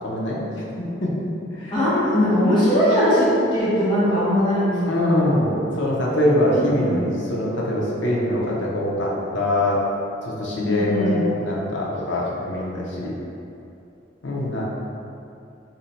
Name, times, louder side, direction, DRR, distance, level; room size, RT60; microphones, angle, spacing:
voice 1, 0.0-1.1 1.5-1.7 4.9-9.8 10.4-13.1 14.2-14.6, left 1 dB, 75° left, -4 dB, 0.6 m, -23 dB
voice 2, 1.7-5.6 6.6-6.9 10.5-11.2, equal, 25° left, -10 dB, 0.6 m, -20 dB
2.6 x 2.1 x 4.0 m, 2.6 s
head